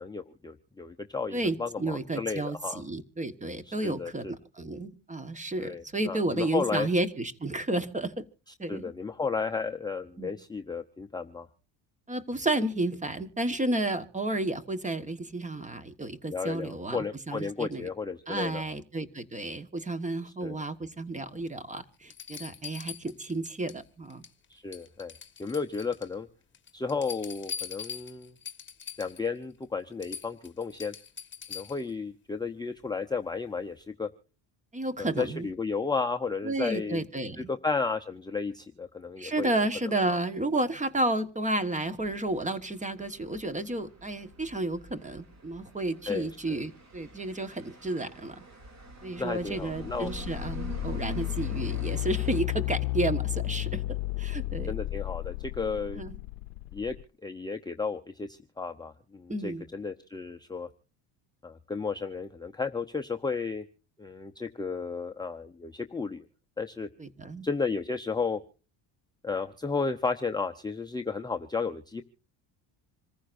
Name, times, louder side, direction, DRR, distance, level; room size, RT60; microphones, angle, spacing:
voice 1, 0.0-2.8 3.7-4.3 5.6-6.9 8.7-11.5 16.3-18.6 20.4-20.6 24.5-25.1 25.4-26.3 26.7-28.3 29.0-30.9 31.5-34.1 35.0-37.0 37.4-39.5 40.1-40.2 46.1-46.6 49.2-50.1 54.7-56.0 56.7-57.0 57.2-60.7 61.4-63.6 64.0-66.3 66.6-66.9 67.4-68.4 69.2-72.0, left 4 dB, 10° left, 3 dB, 0.7 m, -33 dB
voice 2, 1.3-8.3 8.6-8.8 10.2-10.3 12.1-17.9 18.3-24.2 34.7-35.5 36.4-37.5 39.2-48.4 49.0-54.8 55.9-56.2 59.3-59.6 67.0-67.5, right 2 dB, 15° right, 12 dB, 1.3 m, -32 dB
sound 1, 21.4-21.5 22.1-23.8 24.1-24.4 24.7-26.1 26.5-29.3 29.6-29.7 30.0-31.9 33.6-33.7, left 7 dB, 25° left, 1.5 m, -42 dB
sound 2, 42.0-52.4, right 4 dB, 40° right, 3.0 m, -46 dB
sound 3, 49.0-57.0, left 18 dB, 80° left, 0.6 m, -33 dB
26.5 x 15.0 x 2.6 m, 0.37 s
cardioid pair, 110°, 43 cm